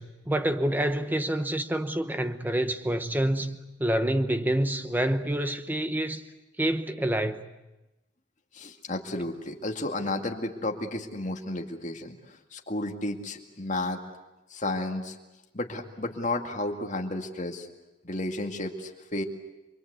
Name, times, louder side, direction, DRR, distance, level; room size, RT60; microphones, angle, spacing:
voice 1, 0.0-6.2 6.6-7.5, right 1 dB, 10° right, 0.9 m, -27 dB
voice 2, 8.5-14.0 14.5-15.2 15.5-17.7 18.0-19.2, left 2 dB, 40° left, 2.3 m, -32 dB
27.5 x 22.5 x 8.2 m
head